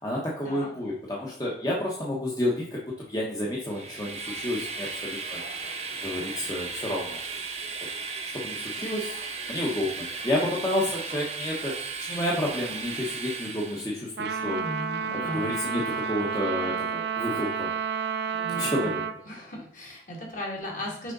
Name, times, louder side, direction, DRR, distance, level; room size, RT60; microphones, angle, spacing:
voice 1, 0.0-5.4 6.0-7.2 8.3-9.2 9.5-11.7 12.0-14.6 15.1-17.7 18.5-19.0, left 1 dB, 20° left, -4 dB, 1.0 m, -30 dB
Train, 3.6-14.0, right 4 dB, 35° right, 0.8 m, -36 dB
Trumpet, 14.2-19.2, right 6 dB, 70° right, 0.4 m, -30 dB
voice 2, 14.4-15.5 18.3-18.9 19.3-21.1, equal, 45° left, -2 dB, 2.1 m, -37 dB
6.2 x 5.0 x 3.9 m, 0.62 s
head